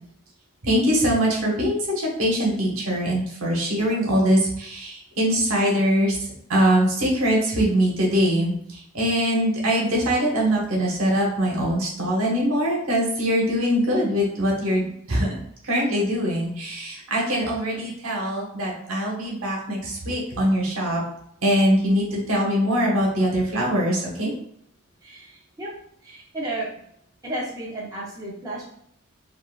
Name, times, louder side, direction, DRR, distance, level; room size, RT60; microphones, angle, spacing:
voice 1, 0.6-15.3 15.6-21.0 21.4-24.3, equal, 85° right, -2 dB, 1.0 m, -22 dB
voice 2, 25.0-25.7 26.0-26.7 27.2-28.6, right 1 dB, 15° right, -6 dB, 0.7 m, -32 dB
3.6 x 2.4 x 2.4 m, 0.70 s
head